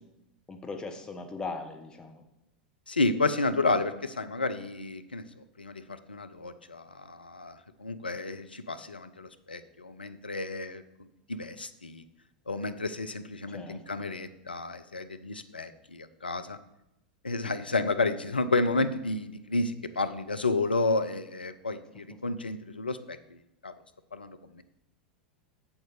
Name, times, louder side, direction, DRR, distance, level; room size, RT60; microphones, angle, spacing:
voice 1, 0.5-2.2 13.5-13.8, left 3 dB, 15° left, 4 dB, 1.3 m, -39 dB
voice 2, 2.9-5.3 5.6-10.8 11.3-12.0 12.5-16.6 17.2-23.2 23.6-23.7 24.1-24.6, left 3 dB, 85° left, 10 dB, 0.6 m, -31 dB
7.4 x 7.2 x 4.9 m, 0.87 s
figure-of-eight pair, 90°, 5 cm